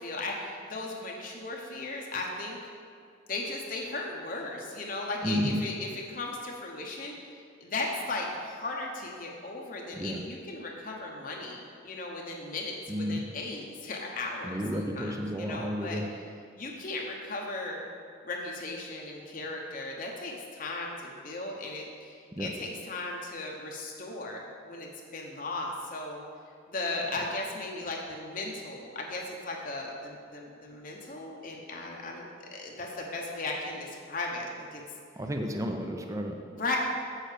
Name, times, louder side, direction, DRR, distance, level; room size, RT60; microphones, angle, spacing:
voice 1, 0.0-2.6 3.3-7.2 7.6-16.0 16.6-17.8 18.2-26.2 26.7-34.8 36.5-36.8, left 2 dB, 45° left, -1 dB, 0.8 m, -36 dB
voice 2, 5.2-5.6 9.9-10.2 12.9-13.2 14.4-16.1 22.4-22.5 35.2-36.4, equal, 15° right, 4 dB, 0.5 m, -31 dB
7.6 x 6.4 x 5.0 m, 2.2 s
head